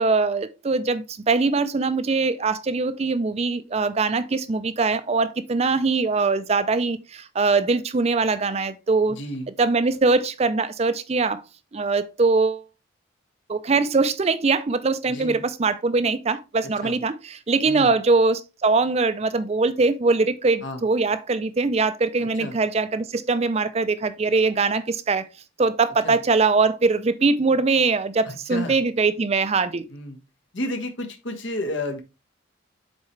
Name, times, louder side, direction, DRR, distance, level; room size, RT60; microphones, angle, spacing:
voice 1, 0.0-9.2 9.6-11.4 11.7-12.7 13.5-25.2 25.6-29.9, right 4 dB, 30° right, 0.4 m, -22 dB
voice 2, 9.1-9.5 15.1-15.4 16.8-17.0 17.6-17.9 20.6-20.8 22.2-22.6 26.0-26.2 28.2-28.8 29.9-30.2 30.5-32.0, left 1 dB, 70° left, 1.2 m, -31 dB
7.3 x 4.3 x 3.1 m
head